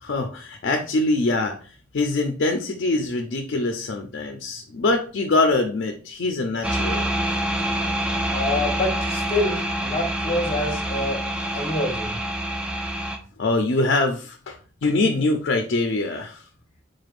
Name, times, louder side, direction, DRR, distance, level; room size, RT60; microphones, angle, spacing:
voice 1, 0.0-1.6 1.9-7.1 13.4-16.4, left 2 dB, 65° left, 4 dB, 0.5 m, -23 dB
sound 1, 6.6-13.2, right 1 dB, 5° right, 0.4 m, -26 dB
voice 2, 8.3-11.2 11.5-12.2, left 2 dB, 30° left, 2 dB, 1.1 m, -26 dB
3.9 x 3.3 x 2.4 m, 0.39 s
head